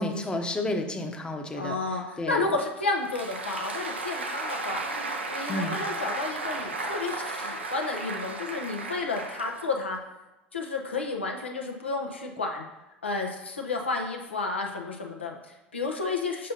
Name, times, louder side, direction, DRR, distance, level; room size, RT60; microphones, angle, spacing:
voice 1, 0.0-1.8 2.2-2.4 5.5-5.8, left 1 dB, 15° left, 3 dB, 0.8 m, -31 dB
voice 2, 1.6-4.8 5.3-10.0 10.5-12.7 13.0-16.5, left 3 dB, 85° left, 1 dB, 0.6 m, -31 dB
Applause, 2.8-10.0, right 2 dB, 85° right, 0.6 m, -34 dB
6.3 x 5.4 x 2.8 m, 1.0 s
figure-of-eight pair, 70°, 6 cm